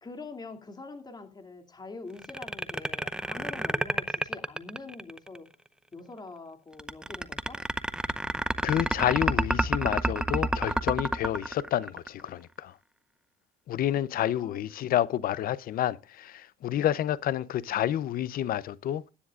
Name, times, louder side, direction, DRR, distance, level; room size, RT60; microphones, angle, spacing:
voice 1, 0.0-5.5 5.9-7.6 14.3-14.6, left 3 dB, 25° left, 2.6 m, -44 dB
sound 1, 2.2-5.4 6.8-12.3, right 1 dB, 5° right, 0.7 m, -28 dB
voice 2, 8.6-12.8 13.7-19.0, left 11 dB, 60° left, 0.6 m, -29 dB
20.5 x 10.0 x 2.4 m
cardioid pair, 110°, 17 cm